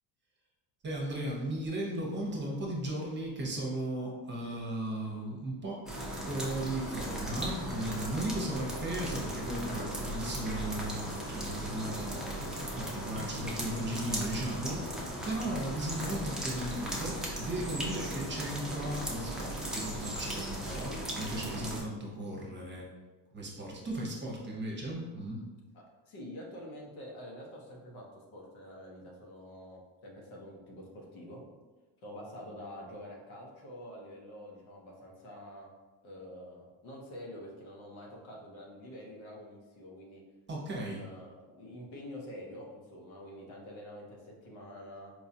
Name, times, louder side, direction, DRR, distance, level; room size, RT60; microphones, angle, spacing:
voice 1, 0.8-5.8 6.3-22.9 23.3-25.4 40.5-41.0, right 1 dB, 25° right, -2 dB, 0.7 m, -36 dB
sound 1, 5.9-21.8, right 1 dB, ahead, 0.4 m, -37 dB
voice 2, 25.7-31.4 32.0-35.7 36.0-40.2 40.7-45.1, left 1 dB, 85° left, -1 dB, 1.1 m, -47 dB
4.6 x 2.3 x 2.7 m, 1.3 s
cardioid pair, 125°, 47 cm